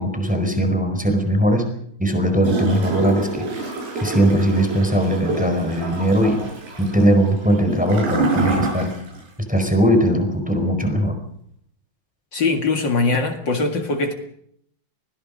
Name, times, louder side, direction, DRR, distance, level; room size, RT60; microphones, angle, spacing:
voice 1, 0.0-1.7 2.0-3.4 4.0-6.4 6.8-8.9 9.5-11.1, right 1 dB, ahead, 6 dB, 4.0 m, -19 dB
Gurgling / Toilet flush, 2.4-9.3 9.6-9.7, right 2 dB, 65° right, 9.5 m, -26 dB
voice 2, 12.3-14.1, left 3 dB, 55° left, 5 dB, 1.2 m, -21 dB
27.0 x 20.5 x 5.3 m, 0.69 s
omnidirectional pair, 5.2 m